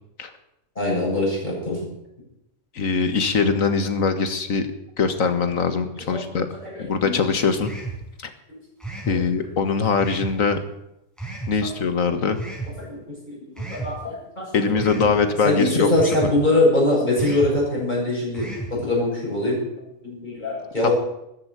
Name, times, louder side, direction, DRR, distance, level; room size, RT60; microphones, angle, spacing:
voice 1, 0.8-1.8 6.1-6.3 6.6-7.2 9.1-9.2 11.6-11.7 12.8-13.0 13.2-15.2 15.4-19.6 20.0-20.9, left 2 dB, 35° left, -5 dB, 7.9 m, -23 dB
voice 2, 2.8-4.7 5.0-6.5 6.8-7.7 9.1-10.6 11.5-12.4 14.5-15.9 20.8-20.9, left 5 dB, 90° left, 9 dB, 1.9 m, -22 dB
sound 1, 7.6-8.0 8.8-9.2 10.0-10.4 11.2-11.6 12.3-12.7 13.6-13.9 14.8-15.1 16.0-16.3 17.2-17.5 18.3-18.7, right 3 dB, ahead, 5.0 m, -32 dB
14.0 x 10.5 x 8.5 m, 0.85 s
omnidirectional pair, 1.4 m